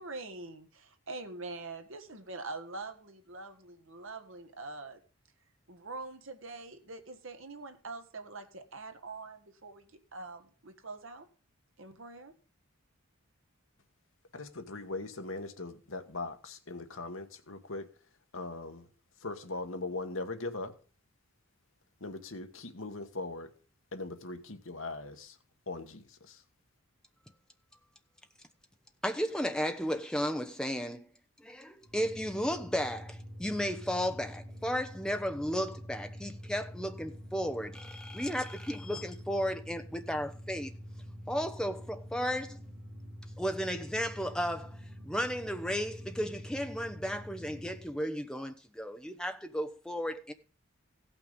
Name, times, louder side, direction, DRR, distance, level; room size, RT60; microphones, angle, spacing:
voice 1, 0.0-5.0 5.7-11.3 11.8-12.3, right 3 dB, 65° right, 1.5 m, -44 dB
voice 2, 14.3-17.9 18.3-18.9 19.2-20.7 22.0-23.5 23.9-25.4 25.7-26.4, left 2 dB, 65° left, 1.4 m, -40 dB
voice 3, 29.0-31.1 31.4-40.7 41.3-42.6 43.4-44.8 45.0-50.3, equal, 5° left, 0.8 m, -34 dB
sound 1, 31.8-47.9, equal, 50° right, 2.9 m, -46 dB
15.5 x 5.9 x 5.3 m
head